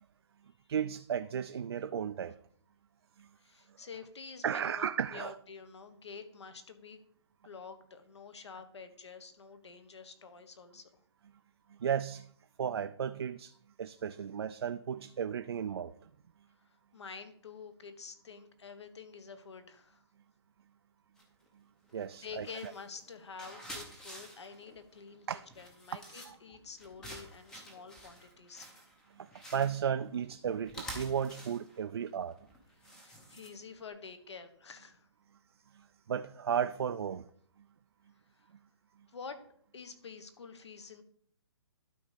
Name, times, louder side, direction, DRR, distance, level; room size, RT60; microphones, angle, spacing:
voice 1, 0.7-2.4 3.2-3.3 4.4-5.3 11.8-12.3 12.6-13.5 13.8-16.1 21.9-22.5 25.3-25.4 25.9-26.0 26.3-26.4 29.2-32.4 35.7-37.2, right 8 dB, 60° right, 0.4 m, -34 dB
voice 2, 3.4-7.0 7.4-10.9 16.6-20.0 22.2-25.3 25.6-28.7 32.8-35.1 38.4-38.5 39.1-39.4 39.7-41.0, left 5 dB, 70° left, 1.3 m, -48 dB
sound 1, 21.2-21.5 21.9-33.9, equal, 5° left, 0.6 m, -49 dB
12.0 x 4.1 x 5.1 m
hypercardioid pair, 175°, 15 cm